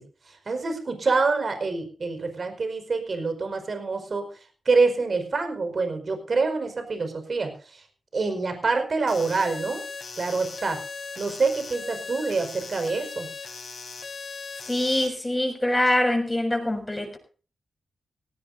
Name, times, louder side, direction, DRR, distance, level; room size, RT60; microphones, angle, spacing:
voice 1, 0.3-4.2 4.6-7.8 8.1-9.8 10.2-10.8 11.2-13.3, right 4 dB, 50° right, 7 dB, 5.1 m, -26 dB
sound 1, 9.1-15.1, left 5 dB, 50° left, 3.9 m, -38 dB
voice 2, 14.7-17.2, left 1 dB, 10° left, 3 dB, 6.4 m, -24 dB
18.0 x 17.0 x 2.7 m, 0.39 s
wide cardioid pair, 95°, 0 cm